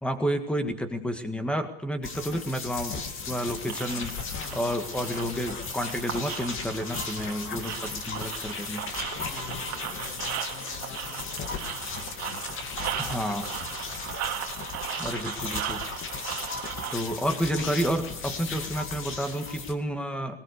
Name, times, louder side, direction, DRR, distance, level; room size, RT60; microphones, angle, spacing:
voice 1, 0.0-3.0 3.3-4.1 4.5-8.8 13.0-13.5 15.0-15.8 16.9-20.4, equal, 5° left, 7 dB, 1.9 m, -30 dB
sound 1, 2.0-19.7, left 5 dB, 30° left, 2.4 m, -36 dB
sound 2, 3.6-16.9, right 12 dB, 40° right, 2.2 m, -37 dB
voice 2, 4.3-4.7 9.1-11.8 12.2-13.5, left 6 dB, 45° left, 1 dB, 7.2 m, -47 dB
20.5 x 19.5 x 6.8 m, 0.80 s
supercardioid pair, 145°, 42 cm